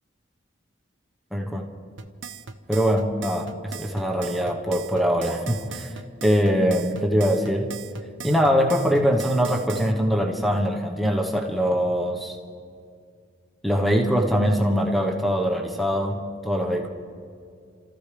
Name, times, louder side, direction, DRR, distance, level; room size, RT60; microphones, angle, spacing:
voice 1, 1.3-1.7 2.7-5.9 6.2-7.7 8.2-12.4 13.6-16.9, equal, ahead, 1 dB, 1.2 m, -23 dB
sound 1, 2.0-9.9, right 6 dB, 75° right, 0.8 m, -38 dB
29.5 x 14.0 x 3.4 m, 2.3 s
head